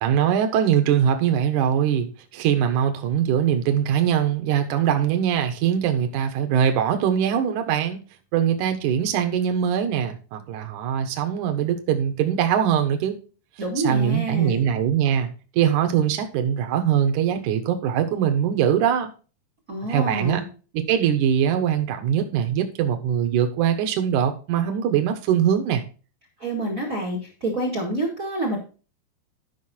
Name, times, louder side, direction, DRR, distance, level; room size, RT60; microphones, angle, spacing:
voice 1, 0.0-8.0 8.3-13.2 13.8-19.1 19.9-20.4 20.7-25.8, right 9 dB, 65° right, 5 dB, 2.2 m, -22 dB
voice 2, 13.6-14.6 19.7-20.5 26.4-28.6, right 1 dB, 40° right, 0 dB, 1.1 m, -27 dB
11.5 x 5.9 x 4.4 m, 0.36 s
omnidirectional pair, 4.7 m